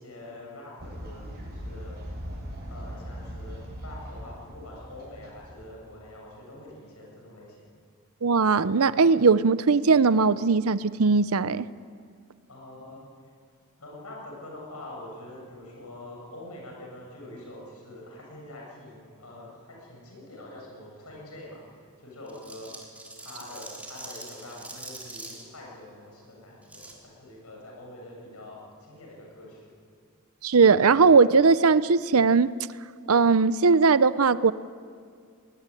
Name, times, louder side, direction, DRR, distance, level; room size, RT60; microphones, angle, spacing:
voice 1, 0.0-2.0 2.7-7.7 12.5-13.1 13.8-22.7 23.2-29.6, left 1 dB, 90° left, -2 dB, 7.3 m, -45 dB
Fowl, 0.8-6.1, equal, 50° right, 6.8 m, -40 dB
voice 2, 8.2-11.6 30.4-32.5 33.1-34.5, right 4 dB, 75° right, 16 dB, 0.7 m, -19 dB
sound 1, 22.3-25.4 26.6-26.9, right 2 dB, 5° right, 3.7 m, -43 dB
22.0 x 19.0 x 9.9 m, 2.2 s
head